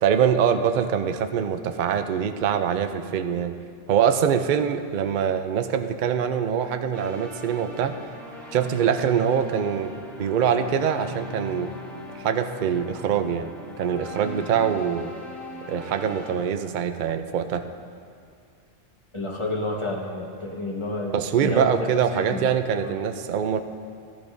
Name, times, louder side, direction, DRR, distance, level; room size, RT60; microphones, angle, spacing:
voice 1, 0.0-3.5 3.9-7.9 8.5-9.9 10.2-11.7 12.2-13.5 13.8-15.1 15.7-17.6 21.1-23.6, right 8 dB, 55° right, 8 dB, 0.6 m, -24 dB
sound 1, 6.9-16.3, left 1 dB, ahead, 1.7 m, -39 dB
voice 2, 19.1-21.1 21.4-22.5 22.8-23.0, left 1 dB, 25° left, -2 dB, 1.3 m, -30 dB
18.0 x 12.0 x 2.7 m, 2.3 s
omnidirectional pair, 1.3 m